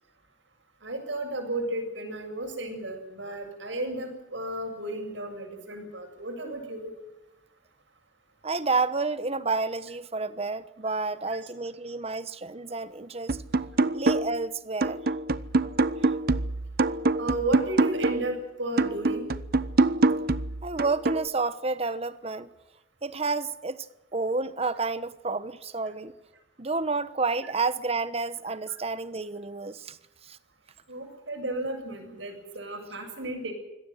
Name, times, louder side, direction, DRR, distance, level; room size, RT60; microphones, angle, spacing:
voice 1, 0.8-6.9 17.2-19.3 28.7-28.8 30.9-33.5, right 2 dB, 75° right, 7.8 m, -33 dB
voice 2, 8.4-13.4 13.9-15.0 20.6-22.5 23.0-23.9 24.1-26.1 26.6-30.0 30.2-30.4, right 3 dB, 35° right, 1.1 m, -30 dB
sound 1, 13.3-14.5 14.8-18.3 18.8-21.3, right 2 dB, 55° right, 0.9 m, -25 dB
25.0 x 17.5 x 8.0 m
head